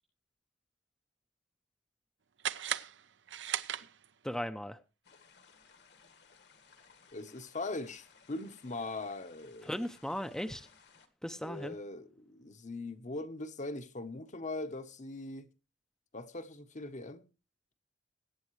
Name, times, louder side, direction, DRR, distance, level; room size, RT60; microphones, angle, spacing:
sound 1, 2.4-4.3, right 10 dB, 80° right, 0.7 m, -37 dB
voice 1, 4.2-4.8 9.6-10.7 11.2-11.8, equal, 5° left, 0.6 m, -37 dB
sound 2, 5.0-11.1, left 5 dB, 65° left, 1.7 m, -61 dB
voice 2, 7.1-9.7 11.4-15.5 16.1-17.3, left 2 dB, 40° left, 0.9 m, -41 dB
22.0 x 9.0 x 3.1 m
head